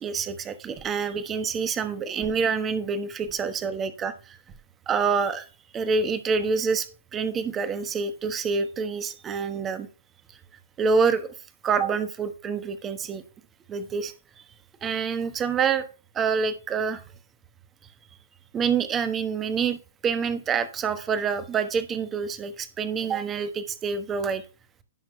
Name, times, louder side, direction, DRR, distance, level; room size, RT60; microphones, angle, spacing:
voice 1, 0.0-4.4 4.9-5.5 5.7-6.9 7.1-9.9 10.8-11.3 11.6-13.2 13.7-14.1 14.8-15.8 16.1-17.0 18.5-24.4, right 5 dB, 20° right, 12 dB, 1.0 m, -27 dB
16.5 x 6.0 x 2.2 m, 0.35 s
figure-of-eight pair, 115°, 0 cm